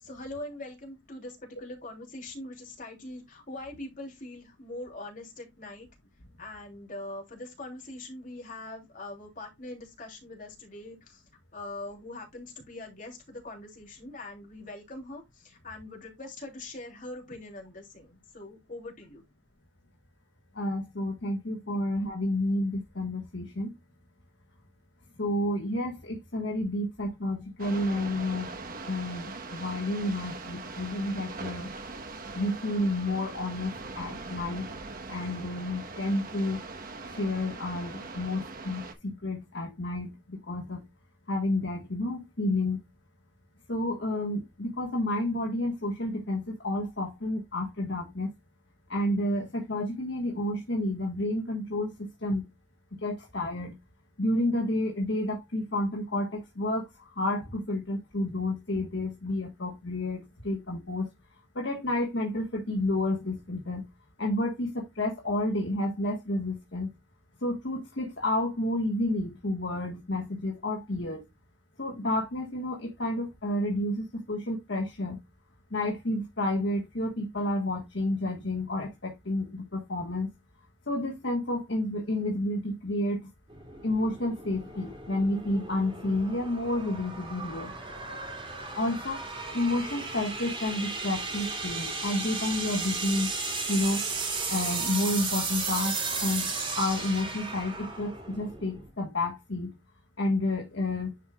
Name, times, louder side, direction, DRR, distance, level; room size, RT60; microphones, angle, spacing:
voice 1, 0.0-5.9 6.4-11.2 11.5-19.2, left 2 dB, 45° left, 3.1 m, -42 dB
voice 2, 20.5-23.8 25.2-28.5 28.8-31.7 32.3-34.7 35.1-36.6 37.0-40.9 41.3-42.8 43.7-48.3 48.9-52.5 52.9-53.8 54.2-61.1 61.5-63.9 64.2-66.9 67.4-71.2 71.8-75.2 75.7-80.3 80.9-83.3 83.8-87.7 88.8-89.3 89.5-93.3 93.7-94.1 94.5-96.5 96.8-99.8 100.2-101.1, left 1 dB, 65° left, 1.5 m, -30 dB
sound 1, 27.6-38.9, right 3 dB, 50° right, 1.1 m, -41 dB
sound 2, 83.5-98.9, right 4 dB, 30° right, 3.0 m, -35 dB
10.0 x 5.0 x 2.3 m
head